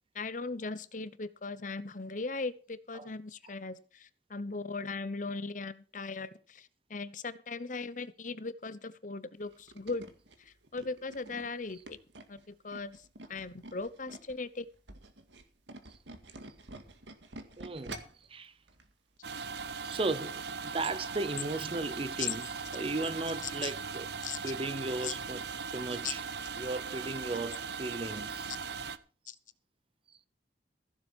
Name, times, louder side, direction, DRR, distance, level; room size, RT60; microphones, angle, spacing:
voice 1, 0.1-10.1 10.4-12.0 12.3-14.7 22.2-22.3 23.4-23.7 24.2-24.4 25.0-25.1 26.0-26.1 29.3-29.4, left 4 dB, 45° left, 0.9 m, -39 dB
Tools, 9.4-14.4 14.8-18.3 18.7-18.9 19.2-19.3, right 2 dB, 85° right, 2.0 m, -48 dB
voice 2, 17.6-18.0 18.3-18.5 19.8-22.5 22.7-24.1 24.4-25.4 25.7-26.2 26.6-28.5, right 2 dB, 30° right, 0.6 m, -36 dB
sound 1, 19.2-29.0, right 5 dB, 70° right, 0.9 m, -39 dB
15.5 x 7.4 x 6.3 m
head